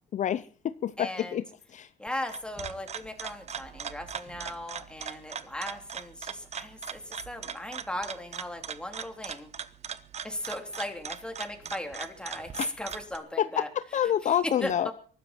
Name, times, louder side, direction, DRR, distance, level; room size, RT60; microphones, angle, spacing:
voice 1, 0.1-1.4 1.7-1.9 12.6-12.8 13.4-14.9, left 10 dB, 45° left, 14 dB, 0.7 m, -28 dB
voice 2, 1.0-1.4 2.0-9.5 10.2-13.7 14.2-14.9, left 1 dB, 5° left, 5 dB, 3.7 m, -37 dB
sound 1, 2.1-13.2, right 7 dB, 40° right, 1.2 m, -40 dB
23.0 x 13.0 x 4.5 m, 0.42 s
cardioid pair, 110°, 17 cm